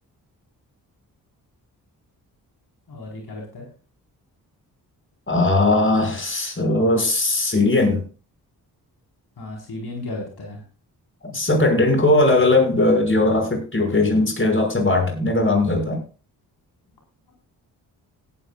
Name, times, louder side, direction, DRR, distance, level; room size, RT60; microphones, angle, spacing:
voice 1, 2.9-3.7 9.4-10.6, left 2 dB, 70° left, -1 dB, 4.7 m, -34 dB
voice 2, 5.3-8.0 11.2-16.0, left 2 dB, 30° left, 3 dB, 6.1 m, -19 dB
17.5 x 11.5 x 2.4 m, 0.35 s
cardioid pair, 55°, 40 cm